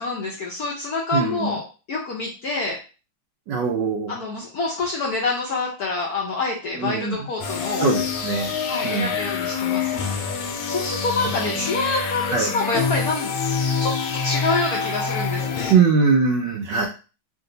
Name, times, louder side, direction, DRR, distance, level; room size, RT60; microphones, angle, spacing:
voice 1, 0.0-2.8 4.1-7.9 8.7-13.4 13.8-13.9 14.2-15.7, left 3 dB, 70° left, -2 dB, 0.9 m, -27 dB
voice 2, 1.1-1.5 3.5-4.1 6.8-7.3 7.8-8.5 8.8-9.1 11.3-11.4 12.3-12.5 15.7-16.9, right 5 dB, 75° right, 1 dB, 1.1 m, -21 dB
sound 1, 7.4-15.7, left 5 dB, 85° left, 1.6 m, -26 dB
3.7 x 2.6 x 3.8 m, 0.34 s
omnidirectional pair, 2.4 m